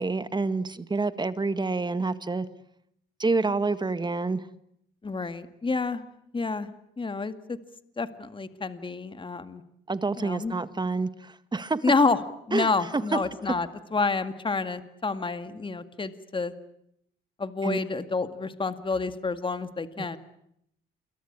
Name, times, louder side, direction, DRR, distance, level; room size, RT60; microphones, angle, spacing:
voice 1, 0.0-2.5 3.2-4.4 9.9-11.8 12.5-13.2 17.6-17.8 20.0-20.2, right 3 dB, 20° right, 12 dB, 1.7 m, -28 dB
voice 2, 5.0-6.0 6.3-7.6 8.0-9.6 10.2-10.6 11.8-12.2 12.5-16.5 17.4-20.2, left 4 dB, 25° left, 10 dB, 2.0 m, -29 dB
28.5 x 23.0 x 8.8 m, 0.74 s
cardioid pair, 90°, 20 cm